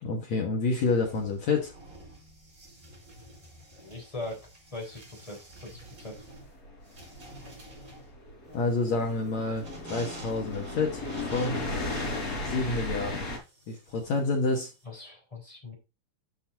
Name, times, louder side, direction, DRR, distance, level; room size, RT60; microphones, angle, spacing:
voice 1, 0.0-1.7 8.5-11.6 12.4-13.3 13.7-14.7, left 3 dB, 70° left, 1 dB, 1.6 m, -28 dB
sound 1, 0.8-14.8, right 1 dB, 20° right, 4.7 m, -49 dB
voice 2, 3.8-6.2 14.8-15.8, left 2 dB, 10° left, -1 dB, 2.9 m, -41 dB
sound 2, 6.3-13.4, left 2 dB, 35° left, 5.0 m, -35 dB
8.5 x 6.1 x 4.0 m, 0.28 s
omnidirectional pair, 5.2 m